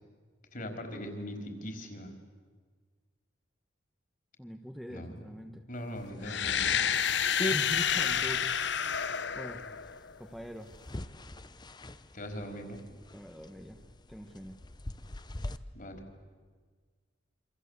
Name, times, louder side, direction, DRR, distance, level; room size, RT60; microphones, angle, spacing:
voice 1, 0.5-2.1 4.9-6.9 12.1-12.8 15.3-15.4 15.7-16.0, equal, 45° left, 4 dB, 4.7 m, -41 dB
voice 2, 4.4-5.6 7.5-8.5 9.3-9.6 10.2-10.7 13.1-13.8 14.1-14.6, equal, ahead, 3 dB, 1.2 m, -43 dB
sound 1, 5.9-15.6, left 1 dB, 25° left, 0.8 m, -43 dB
sound 2, 6.2-10.2, left 8 dB, 65° left, 1.0 m, -29 dB
27.5 x 26.0 x 8.3 m, 1.5 s
head